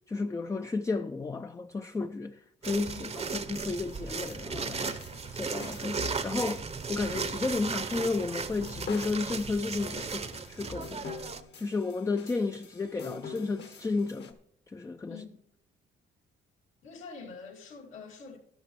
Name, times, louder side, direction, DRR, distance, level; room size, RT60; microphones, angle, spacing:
voice 1, 0.1-5.0 5.3-11.1 11.6-14.4 14.7-15.2, left 3 dB, 15° left, 0.4 m, -33 dB
sound 1, 2.6-11.4, right 5 dB, 30° right, 0.8 m, -36 dB
voice 2, 2.9-3.3 15.1-15.5 16.8-18.4, left 5 dB, 80° left, 2.5 m, -46 dB
sound 2, 3.4-14.3, left 4 dB, 60° left, 1.5 m, -45 dB
13.0 x 11.5 x 3.1 m
cardioid pair, 90°, 20 cm